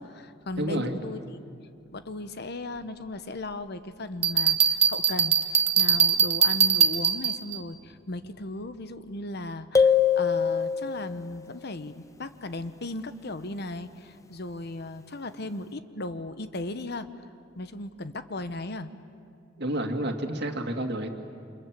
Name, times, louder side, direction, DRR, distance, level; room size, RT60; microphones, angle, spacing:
voice 1, 0.0-1.4 1.9-17.1 17.6-18.9, left 2 dB, 60° left, 11 dB, 1.1 m, -36 dB
voice 2, 0.6-1.0 19.6-21.1, right 1 dB, 60° right, 4 dB, 2.2 m, -29 dB
Bell, 4.2-7.6, right 7 dB, 35° right, 1.2 m, -22 dB
sound 1, 9.7-11.2, left 6 dB, 15° left, 0.6 m, -22 dB
29.0 x 26.5 x 7.6 m, 2.4 s
head